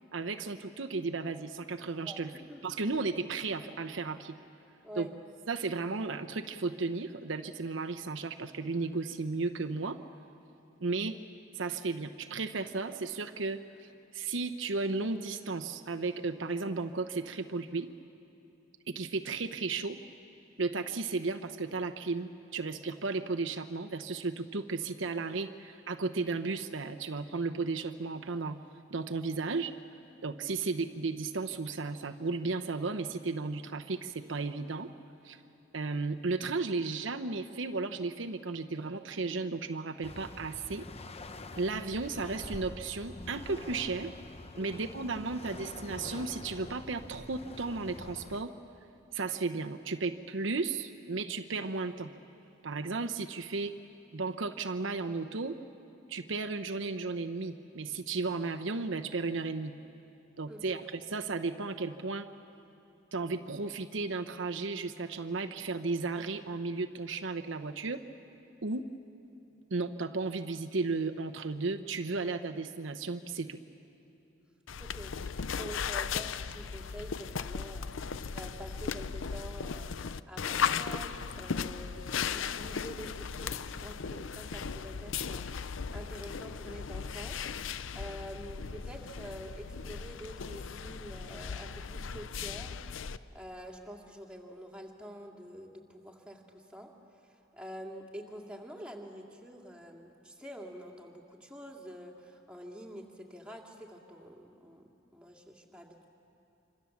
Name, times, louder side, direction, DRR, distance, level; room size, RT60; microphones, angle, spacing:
voice 1, 0.1-2.3 2.6-4.4 5.0-5.1 5.5-10.0 10.8-11.2 11.6-17.9 18.9-20.0 20.6-28.6 28.9-29.8 30.2-34.9 35.2-35.4 35.7-40.9 41.6-44.1 44.6-48.5 49.1-52.1 52.6-53.7 54.1-55.6 56.1-59.7 60.4-62.3 63.1-68.0 68.6-68.9 69.7-73.6, right 3 dB, 70° right, 7 dB, 0.9 m, -34 dB
sound 1, 40.0-48.4, left 2 dB, 30° left, 0.9 m, -46 dB
voice 2, 60.5-60.8 74.8-82.1 82.3-85.5 85.9-87.4 87.6-92.8 93.3-96.9 97.5-106.0, equal, 5° right, 0 dB, 2.4 m, -47 dB
sound 2, 74.7-93.2, left 6 dB, 80° left, 0.6 m, -37 dB
26.5 x 26.0 x 7.2 m, 2.8 s
head